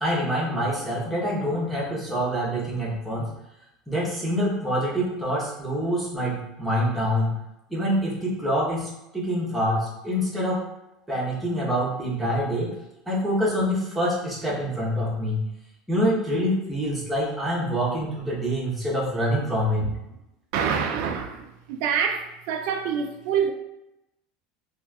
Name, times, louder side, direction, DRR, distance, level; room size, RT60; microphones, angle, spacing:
voice 1, 0.0-3.3 3.9-7.3 7.7-10.6 11.1-12.7 13.1-15.4 15.9-19.9, equal, 5° right, 0.9 m, -26 dB
voice 2, 20.5-23.5, right 7 dB, 65° right, 0.3 m, -26 dB
4.0 x 2.4 x 2.3 m
supercardioid pair, 150°, 0 cm